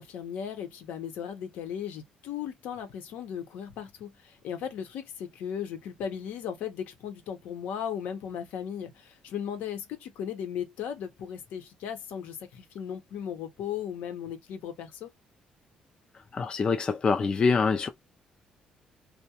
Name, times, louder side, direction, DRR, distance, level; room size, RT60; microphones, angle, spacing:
voice 1, 0.0-15.1, left 8 dB, 85° left, 0.8 m, -36 dB
voice 2, 16.3-17.9, left 5 dB, 30° left, 0.3 m, -25 dB
2.3 x 2.1 x 2.8 m
cardioid pair, 120°, 3 cm